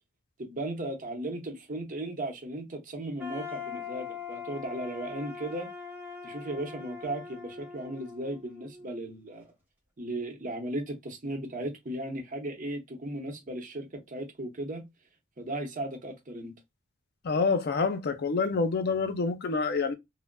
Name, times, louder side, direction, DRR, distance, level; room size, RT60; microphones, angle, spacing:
voice 1, 0.4-5.7 6.2-9.5 10.0-14.8 15.4-16.5, right 1 dB, 40° right, 0.8 m, -36 dB
sound 1, 3.2-9.1, left 6 dB, 10° right, 0.8 m, -42 dB
voice 2, 17.2-19.9, left 4 dB, 50° left, 0.5 m, -27 dB
3.7 x 2.0 x 2.2 m
head